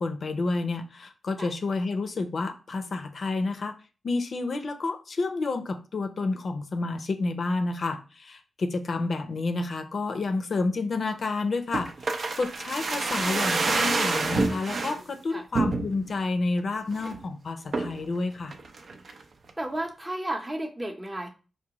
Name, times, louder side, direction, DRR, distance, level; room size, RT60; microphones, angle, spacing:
voice 1, 0.0-3.7 4.0-18.5, left 3 dB, 65° left, 8 dB, 0.5 m, -30 dB
sound 1, 11.7-15.0 15.5-16.2 16.6-16.7 16.9-17.2 17.7-18.0 18.5-19.2 19.5-19.6, right 3 dB, 65° right, 0.5 m, -28 dB
voice 2, 15.1-15.4 19.6-21.3, right 1 dB, 20° right, 4 dB, 0.7 m, -33 dB
4.7 x 2.2 x 2.8 m, 0.34 s
cardioid pair, 65°, 0 cm